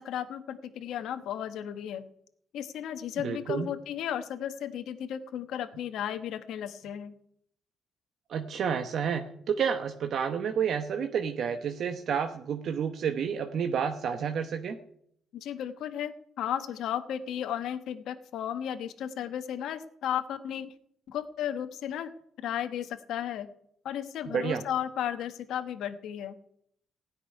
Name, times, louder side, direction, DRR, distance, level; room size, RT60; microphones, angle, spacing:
voice 1, 0.0-2.0 2.5-7.2 15.3-20.7 21.1-22.1 22.4-23.5 23.8-26.4, left 10 dB, 80° left, 9 dB, 1.1 m, -34 dB
voice 2, 3.2-3.7 8.3-14.8 24.3-24.6, right 7 dB, 65° right, 6 dB, 1.0 m, -30 dB
16.0 x 6.2 x 9.8 m, 0.71 s
cardioid pair, 90°, 0 cm